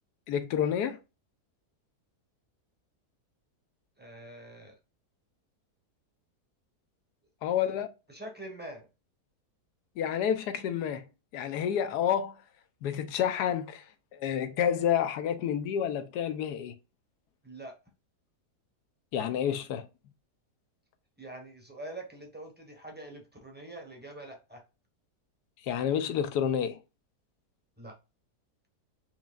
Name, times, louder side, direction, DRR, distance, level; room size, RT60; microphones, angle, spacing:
voice 1, 0.3-1.0 7.4-7.9 10.0-11.1 11.3-12.4 12.8-13.8 14.1-16.8 19.1-19.9 25.6-26.8, left 9 dB, 80° left, 1.2 m, -29 dB
voice 2, 4.0-4.8 7.6-7.7 8.1-8.9 17.4-17.7 21.2-24.6 27.8-28.0, right 1 dB, 10° right, 0.9 m, -44 dB
4.7 x 3.0 x 2.4 m
omnidirectional pair, 1.7 m